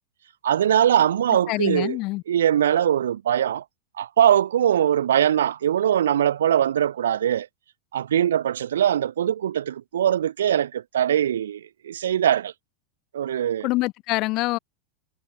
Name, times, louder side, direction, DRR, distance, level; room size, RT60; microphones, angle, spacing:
voice 1, 0.4-2.0 2.3-3.6 4.0-7.5 7.9-12.5 13.1-13.7, right 10 dB, 80° right, 1.0 m, -21 dB
voice 2, 1.5-2.2 13.6-14.6, left 21 dB, 50° left, 7.1 m, -25 dB
hypercardioid pair, 100°, 0 cm